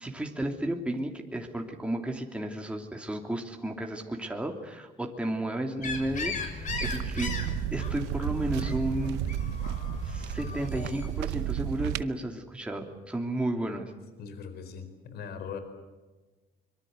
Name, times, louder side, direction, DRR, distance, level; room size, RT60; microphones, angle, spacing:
voice 1, 0.0-7.3 7.7-9.3 10.0-13.9, right 1 dB, 5° right, 2 dB, 3.0 m, -33 dB
sound 1, 5.8-11.1, left 3 dB, 50° left, 6.2 m, -37 dB
sound 2, 6.7-12.0, right 15 dB, 90° right, 0.9 m, -33 dB
voice 2, 14.2-15.6, left 6 dB, 70° left, 9 dB, 4.4 m, -40 dB
24.5 x 23.5 x 8.1 m, 1.3 s
cardioid pair, 110°, 17 cm